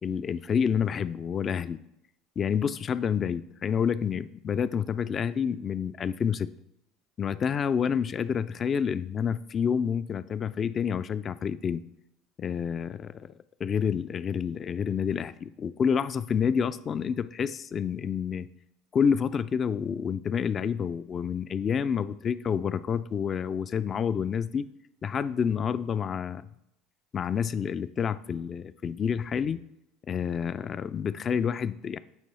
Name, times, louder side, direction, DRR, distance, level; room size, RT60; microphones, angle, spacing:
voice 1, 0.0-1.8 2.4-6.5 7.2-11.8 12.4-13.3 13.6-18.5 18.9-24.7 25.0-26.5 27.1-29.6 30.1-32.0, left 7 dB, 35° left, 15 dB, 0.3 m, -28 dB
9.0 x 3.0 x 4.2 m, 0.84 s
hypercardioid pair, 85°, 0 cm